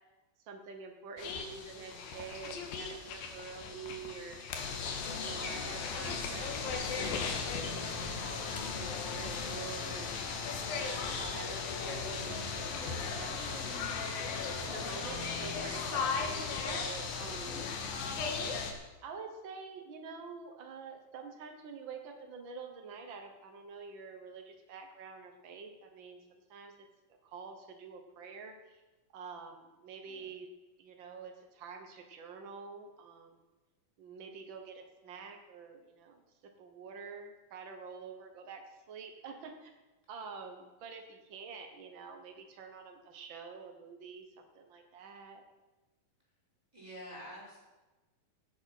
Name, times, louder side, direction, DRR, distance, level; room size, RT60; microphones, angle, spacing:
voice 1, 0.4-4.4 5.1-7.3 7.6-10.4 10.7-13.9 14.6-17.7 19.0-26.2 26.5-26.9 27.2-28.8 29.1-30.5 30.8-33.4 34.0-36.2 36.6-39.7 40.1-45.4, right 5 dB, 75° right, 4 dB, 1.1 m, -47 dB
sound 1, 1.2-18.7, left 5 dB, 85° left, 3.2 m, -37 dB
sound 2, 5.0-16.3, left 5 dB, 55° left, 1.8 m, -45 dB
voice 2, 30.1-30.4 46.7-47.6, equal, 10° right, -4 dB, 4.2 m, -48 dB
16.5 x 8.4 x 5.9 m, 1.1 s
omnidirectional pair, 4.0 m